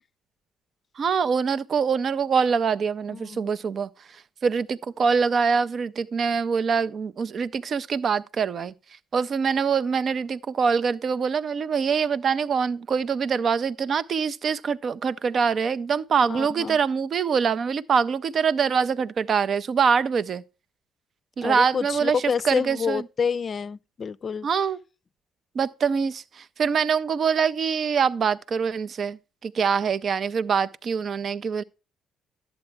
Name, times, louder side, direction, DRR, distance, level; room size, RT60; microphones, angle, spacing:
voice 1, 1.0-8.7 9.1-20.4 21.4-23.0 24.4-24.8 25.5-31.6, right 6 dB, 50° right, 0.5 m, -24 dB
voice 2, 3.1-3.5 16.2-16.8 21.4-24.5, left 6 dB, 45° left, 0.4 m, -28 dB
11.5 x 8.0 x 3.3 m
supercardioid pair, 60°, 0 cm